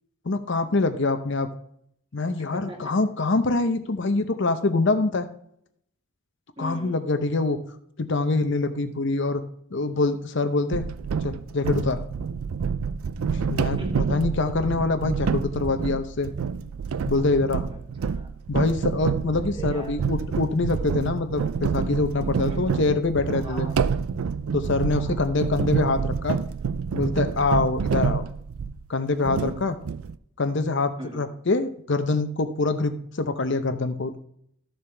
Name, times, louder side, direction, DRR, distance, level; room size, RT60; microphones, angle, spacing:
voice 1, 0.2-1.5 2.1-5.3 6.6-7.6 8.0-9.4 9.7-10.9 11.2-12.0 13.3-13.8 14.1-16.3 17.1-17.7 18.5-23.7 24.5-26.4 26.9-28.2 28.9-29.8 30.4-34.2, left 3 dB, 55° left, 8 dB, 0.7 m, -25 dB
voice 2, 2.4-3.0 6.6-7.0 13.6-14.2 17.7-18.3 19.4-20.1 22.4-22.9 23.3-24.0 24.9-25.3 31.0-31.3, equal, 25° right, 1 dB, 2.0 m, -40 dB
sound 1, 10.7-28.9 29.2-30.1, right 6 dB, 75° right, 0.4 m, -28 dB
13.5 x 7.1 x 3.3 m, 0.68 s
head